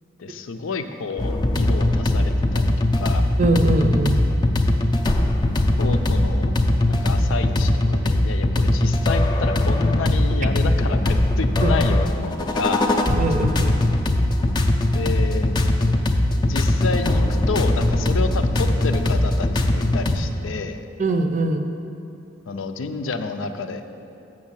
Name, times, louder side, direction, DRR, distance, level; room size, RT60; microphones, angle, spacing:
voice 1, 0.2-3.3 5.8-6.6 6.9-12.9 14.9-15.5 16.4-20.9 22.5-23.8, left 4 dB, 90° left, 8 dB, 0.5 m, -29 dB
sound 1, 1.2-20.2, left 1 dB, 25° left, 0.4 m, -20 dB
voice 2, 3.4-4.3 10.4-10.5 11.6-11.7 12.2-12.3 13.1-13.8 21.0-21.7, right 2 dB, 40° right, 6 dB, 0.5 m, -22 dB
6.5 x 6.2 x 7.3 m, 2.7 s
head